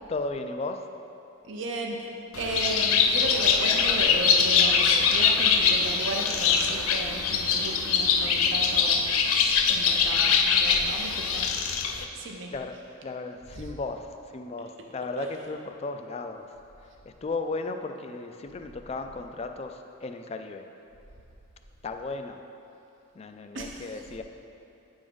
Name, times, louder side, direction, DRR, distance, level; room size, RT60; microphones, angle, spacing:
voice 1, 0.1-0.9 12.5-16.5 17.1-20.7 21.8-22.4 23.1-24.2, left 3 dB, 30° left, 6 dB, 0.3 m, -35 dB
voice 2, 1.4-11.5 12.1-12.5 13.6-13.7 15.2-15.3 23.5-23.9, right 2 dB, 60° right, 1 dB, 0.6 m, -35 dB
Bird, 2.3-12.0, left 6 dB, 85° left, 0.5 m, -23 dB
9.3 x 3.6 x 5.2 m, 2.8 s
head